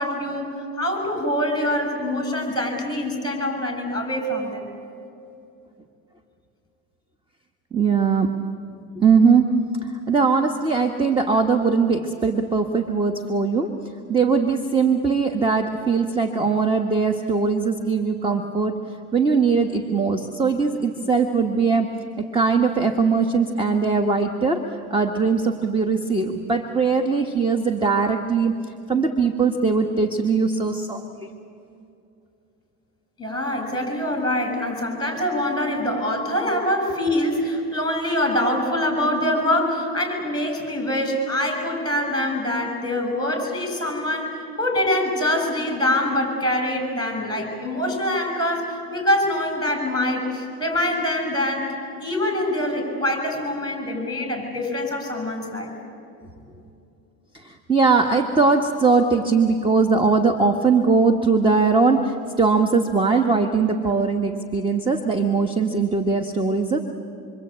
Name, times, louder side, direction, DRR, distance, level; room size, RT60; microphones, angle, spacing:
voice 1, 0.0-4.7 33.2-51.7 52.0-55.7, left 1 dB, 10° left, 5 dB, 7.2 m, -24 dB
voice 2, 7.7-8.3 9.0-9.4 9.8-13.7 14.1-18.8 19.1-21.9 22.2-24.6 24.9-28.5 28.9-31.3 57.3-66.8, right 4 dB, 15° right, 6 dB, 1.4 m, -20 dB
26.0 x 25.0 x 8.8 m, 2.7 s
cardioid pair, 120°, 38 cm